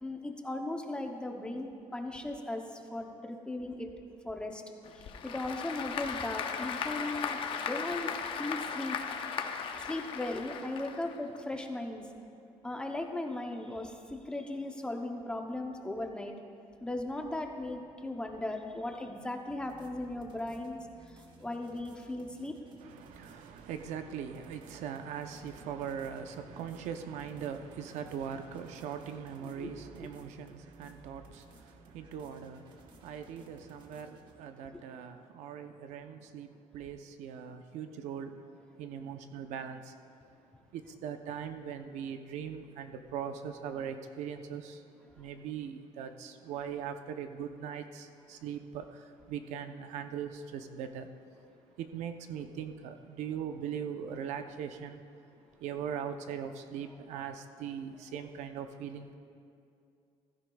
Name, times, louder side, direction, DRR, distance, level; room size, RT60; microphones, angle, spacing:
voice 1, 0.0-3.9 4.2-4.6 4.9-8.1 8.4-9.0 9.8-12.1 12.6-16.3 16.8-20.8 21.1-22.5 29.4-29.7 30.0-30.1 34.7-34.8, left 2 dB, 10° left, 3 dB, 0.6 m, -37 dB
Applause / Crowd, 4.8-11.4, left 6 dB, 45° left, 0.7 m, -37 dB
sound 1, 19.5-34.3, right 2 dB, 40° right, 1.0 m, -57 dB
voice 2, 22.8-38.5 38.8-39.9 40.7-44.8 45.2-51.1 51.8-55.0 55.6-59.2, right 8 dB, 80° right, 8 dB, 0.7 m, -40 dB
15.5 x 15.0 x 2.3 m, 2.5 s
cardioid pair, 175°, 12 cm